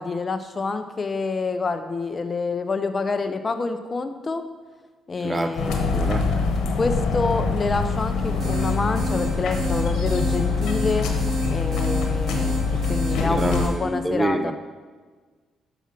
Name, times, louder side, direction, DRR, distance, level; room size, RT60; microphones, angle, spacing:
voice 1, 0.0-4.4 5.1-6.2 6.8-11.1 11.5-14.5, left 3 dB, 35° left, 9 dB, 0.6 m, -27 dB
voice 2, 5.2-6.3 13.2-14.5, right 2 dB, 25° right, 8 dB, 0.6 m, -27 dB
sound 1, 5.6-13.7, left 4 dB, 80° left, 1.1 m, -24 dB
sound 2, 8.1-13.7, right 2 dB, 45° right, 2.9 m, -32 dB
7.1 x 6.0 x 5.9 m, 1.4 s
cardioid pair, 90°, 0 cm